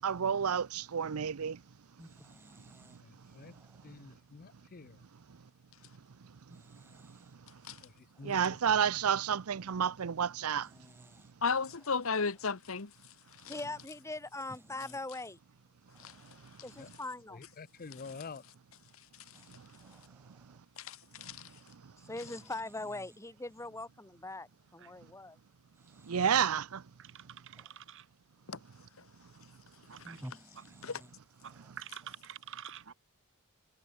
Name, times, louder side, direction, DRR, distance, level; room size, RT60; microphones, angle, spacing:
voice 1, 0.0-1.6 8.2-10.7 26.1-26.8, right 7 dB, 85° right, 0.6 m, -30 dB
voice 2, 2.0-3.9 6.5-7.3 8.1-8.4 10.6-11.3 11.8-12.1 14.5-15.0 15.9-16.4 19.3-20.4 22.2-23.2 25.8-26.5 27.5-27.8 29.9-31.1 31.4-31.7, equal, 10° right, 4.4 m, -55 dB
voice 3, 3.0-3.5 3.8-5.0 8.2-8.4 16.8-16.9 17.3-18.4, left 4 dB, 40° left, 0.6 m, -48 dB
voice 4, 11.4-12.9 13.4-13.5 16.0-16.1 21.2-21.4 28.5-28.6 30.8-31.0, left 5 dB, 65° left, 1.3 m, -33 dB
voice 5, 13.5-15.4 16.6-17.4 22.0-25.4, left 2 dB, 15° left, 1.7 m, -41 dB
voice 6, 27.0-28.1 29.9-30.2 31.4-32.9, right 9 dB, 60° right, 1.5 m, -48 dB
head